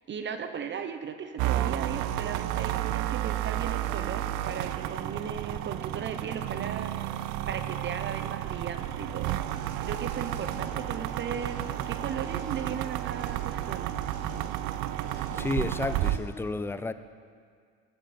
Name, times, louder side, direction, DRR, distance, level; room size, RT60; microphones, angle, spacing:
voice 1, 0.0-6.9 7.5-9.4 9.8-14.0 15.6-15.8, right 7 dB, 35° right, 9 dB, 0.9 m, -37 dB
sound 1, 1.4-16.2, right 14 dB, 60° right, 0.6 m, -32 dB
sound 2, 8.8-16.2, left 1 dB, 75° left, 3.4 m, -45 dB
voice 2, 15.3-16.9, left 2 dB, 5° left, 13 dB, 0.4 m, -31 dB
15.5 x 10.0 x 4.3 m, 2.1 s
supercardioid pair, 85°, 33 cm